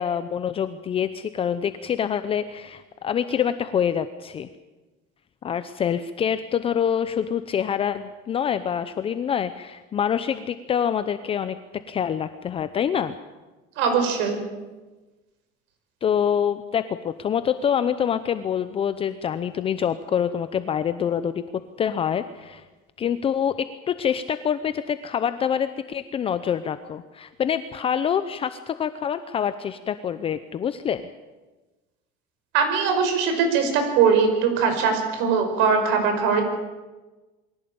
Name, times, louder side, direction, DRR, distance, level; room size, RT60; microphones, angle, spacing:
voice 1, 0.0-4.5 5.4-13.1 16.0-21.4 21.8-22.6 23.0-31.1, left 8 dB, 30° left, 11 dB, 0.8 m, -26 dB
voice 2, 13.8-14.4 32.5-36.4, right 5 dB, 70° right, 5 dB, 5.7 m, -21 dB
22.5 x 16.5 x 8.8 m, 1.2 s
cardioid pair, 145°, 19 cm